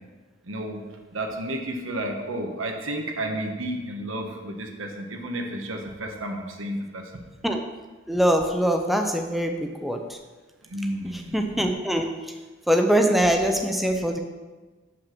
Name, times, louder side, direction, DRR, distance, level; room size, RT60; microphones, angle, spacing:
voice 1, 0.4-0.8 1.1-7.2 10.7-11.6, right 1 dB, 85° right, 2 dB, 1.4 m, -32 dB
voice 2, 8.1-9.6 9.8-10.0 11.3-12.1 12.7-14.2, equal, ahead, 4 dB, 0.5 m, -22 dB
7.7 x 5.8 x 6.6 m, 1.3 s
head